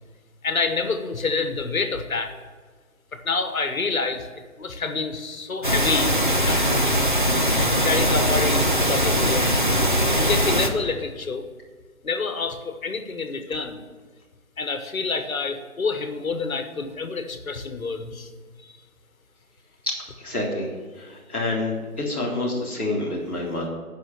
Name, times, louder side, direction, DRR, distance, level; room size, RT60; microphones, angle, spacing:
voice 1, 0.4-2.3 3.1-4.3 4.6-6.8 7.8-9.6 10.2-11.5 12.0-13.8 14.6-18.3 18.6-18.7, left 4 dB, 70° left, 8 dB, 1.3 m, -27 dB
sound 1, 5.6-10.7, equal, 35° right, 0.7 m, -21 dB
voice 2, 19.9-20.7 21.0-23.7, left 2 dB, 10° right, -13 dB, 1.2 m, -28 dB
8.8 x 5.6 x 7.8 m, 1.5 s
hypercardioid pair, 180°, 44 cm